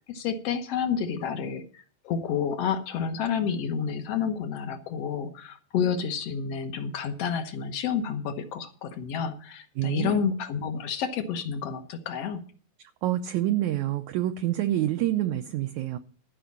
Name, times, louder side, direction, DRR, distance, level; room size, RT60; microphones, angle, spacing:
voice 1, 0.1-1.6 2.0-12.4, left 7 dB, 65° left, 7 dB, 1.6 m, -29 dB
voice 2, 9.8-10.1 13.0-16.0, right 13 dB, 85° right, 7 dB, 1.7 m, -27 dB
14.0 x 5.1 x 8.4 m, 0.43 s
omnidirectional pair, 4.1 m